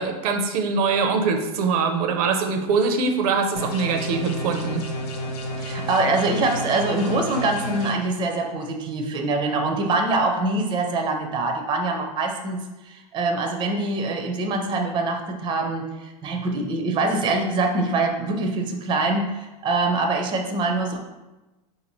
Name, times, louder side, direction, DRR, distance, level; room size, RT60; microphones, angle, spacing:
voice 1, 0.0-4.8, right 4 dB, 75° right, 5 dB, 0.5 m, -23 dB
sound 1, 3.6-7.9, equal, 90° left, 0.7 m, -31 dB
voice 2, 5.6-21.0, right 2 dB, 25° right, 4 dB, 0.4 m, -24 dB
3.9 x 2.7 x 3.0 m, 1.0 s
supercardioid pair, 120°, 19 cm